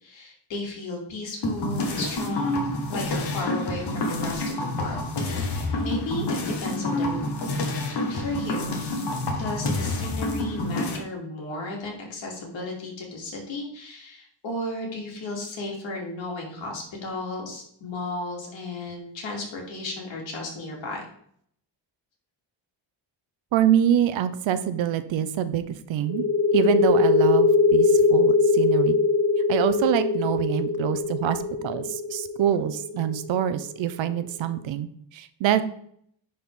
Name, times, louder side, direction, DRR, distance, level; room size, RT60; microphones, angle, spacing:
voice 1, 0.0-7.3 8.1-8.8 9.3-21.1, left 2 dB, 80° left, -1 dB, 2.8 m, -34 dB
sound 1, 1.4-11.0, left 2 dB, 60° left, 1.7 m, -28 dB
voice 2, 23.5-26.2 26.5-29.0 29.5-35.6, right 10 dB, 80° right, 12 dB, 0.8 m, -25 dB
sound 2, 26.1-33.5, left 4 dB, 45° left, 0.9 m, -21 dB
10.5 x 4.4 x 3.7 m, 0.66 s
cardioid pair, 135°, 45 cm